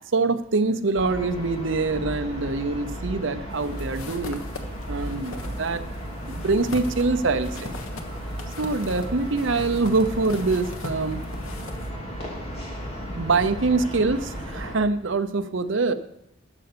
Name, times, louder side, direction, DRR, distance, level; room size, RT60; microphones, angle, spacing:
voice 1, 0.1-4.4 4.9-5.8 6.3-7.7 8.6-11.2 13.1-15.9, right 3 dB, 65° right, 10 dB, 0.7 m, -24 dB
sound 1, 0.9-14.8, equal, 30° left, 2.4 m, -35 dB
sound 2, 3.5-11.9, left 2 dB, 85° left, 1.3 m, -40 dB
12.5 x 6.7 x 6.8 m, 0.79 s
head